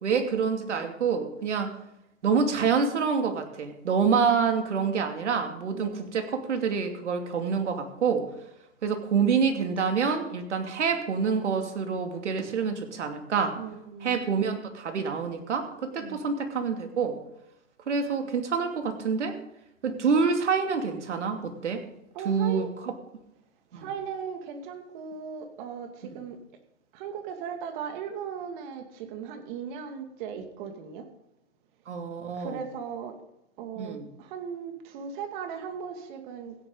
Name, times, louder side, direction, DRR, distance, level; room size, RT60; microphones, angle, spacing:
voice 1, 0.0-1.8 2.2-8.2 8.8-13.6 14.0-17.2 17.9-19.4 19.8-21.8 22.2-22.9 23.7-23.9 26.1-26.2 31.9-32.6 33.8-34.1, right 6 dB, 75° right, 5 dB, 2.7 m, -27 dB
voice 2, 13.6-14.2 16.0-16.3 19.8-20.1 22.1-22.7 23.7-26.4 26.9-31.1 32.3-33.2 33.6-36.6, right 7 dB, 40° right, 6 dB, 2.5 m, -38 dB
16.5 x 10.5 x 4.0 m, 0.84 s
hypercardioid pair, 125°, 36 cm